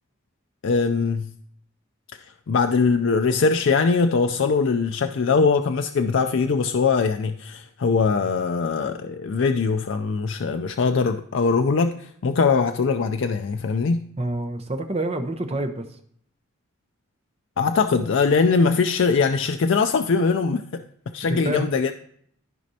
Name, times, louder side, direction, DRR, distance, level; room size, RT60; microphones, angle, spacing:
voice 1, 0.6-1.3 2.5-14.0 17.6-20.8 21.1-21.9, left 4 dB, 60° left, 0.4 m, -21 dB
voice 2, 14.2-15.8 21.3-21.7, right 1 dB, 30° right, 0.8 m, -27 dB
14.0 x 5.1 x 2.8 m
head